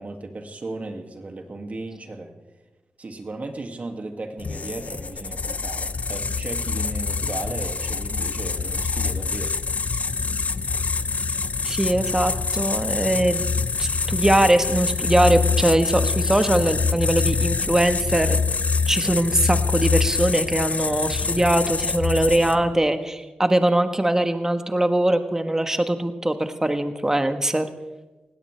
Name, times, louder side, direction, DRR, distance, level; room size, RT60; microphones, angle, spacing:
voice 1, 0.0-2.3 3.0-9.5, right 2 dB, 50° right, 4 dB, 2.3 m, -35 dB
sound 1, 4.4-22.8, left 4 dB, 50° left, 0.7 m, -25 dB
voice 2, 11.6-13.4 13.8-18.4 18.9-27.7, right 1 dB, 15° right, 8 dB, 1.3 m, -21 dB
20.0 x 17.0 x 3.4 m, 1.2 s
cardioid pair, 60°, 3 cm